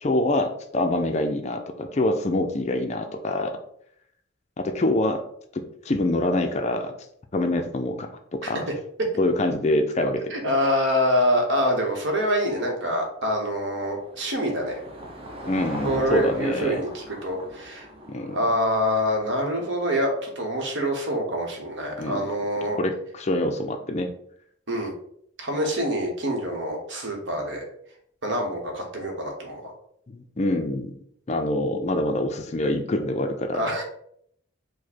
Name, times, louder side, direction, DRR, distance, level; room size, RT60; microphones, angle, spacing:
voice 1, 0.0-3.6 4.6-5.2 5.8-6.9 7.3-8.6 9.2-10.2 15.5-16.8 18.1-18.4 22.0-22.3 22.8-24.1 30.1-31.0 31.3-33.6, left 1 dB, 35° left, 5 dB, 0.4 m, -25 dB
voice 2, 10.3-14.8 15.8-17.9 18.3-22.8 24.7-24.9 25.4-27.6 28.2-29.7 33.5-33.8, equal, 60° right, 1 dB, 1.1 m, -25 dB
Car passing by / Engine, 13.1-19.6, right 1 dB, 25° right, 0.7 m, -40 dB
4.9 x 2.1 x 4.3 m, 0.68 s
head